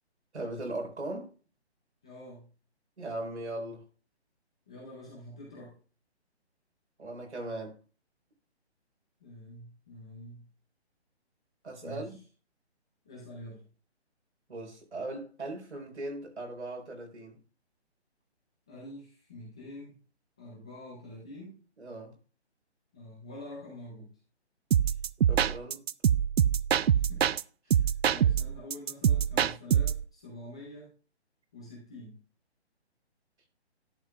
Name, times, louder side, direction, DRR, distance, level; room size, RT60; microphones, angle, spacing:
voice 1, 0.3-1.3 3.0-3.8 7.0-7.8 11.6-12.2 14.5-17.4 21.8-22.1 25.3-25.8, right 2 dB, 85° right, 4.7 m, -38 dB
voice 2, 2.0-2.5 4.7-5.7 9.2-10.5 11.8-12.2 13.0-13.6 18.7-20.0 20.4-21.6 22.9-24.1 26.8-27.4 27.6-30.9 31.5-32.2, left 1 dB, 5° left, 0.4 m, -46 dB
sound 1, 24.7-27.4 27.7-30.0, right 9 dB, 65° right, 0.5 m, -25 dB
11.0 x 7.9 x 2.4 m
hypercardioid pair, 155°, 34 cm